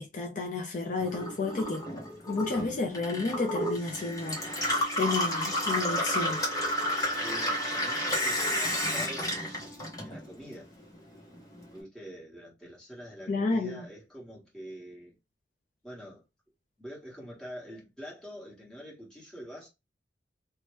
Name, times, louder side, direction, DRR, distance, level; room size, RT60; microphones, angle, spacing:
voice 1, 0.0-1.9 2.3-4.7 5.0-6.4 13.3-13.8, left 3 dB, 45° left, 0.5 m, -31 dB
Gurgling / Water tap faucet / Sink (filling or washing), 1.0-10.5 10.8-11.7, left 1 dB, 20° left, 0.9 m, -31 dB
Wind instrument woodwind instrument, 2.6-10.6, right 3 dB, 55° right, 0.5 m, -45 dB
voice 2, 7.2-10.7 11.7-15.1 15.8-16.2 16.8-19.7, equal, 5° left, 1.3 m, -45 dB
2.9 x 2.1 x 3.0 m
head